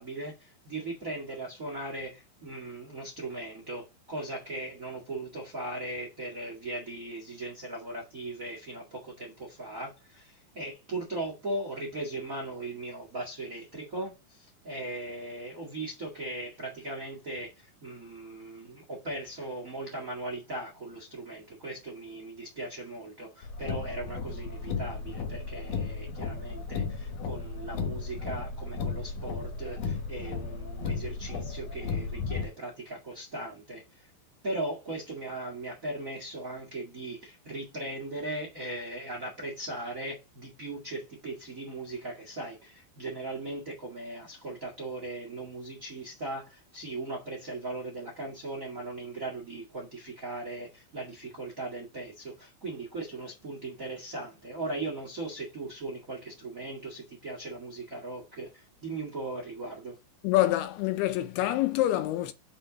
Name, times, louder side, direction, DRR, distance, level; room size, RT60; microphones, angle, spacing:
voice 1, 0.0-34.1 34.4-60.0, right 2 dB, 45° right, 1.0 m, -38 dB
Car, 23.4-32.4, left 5 dB, 60° left, 2.2 m, -35 dB
voice 2, 60.2-62.3, left 15 dB, 80° left, 2.4 m, -26 dB
6.9 x 4.3 x 4.1 m
omnidirectional pair, 5.0 m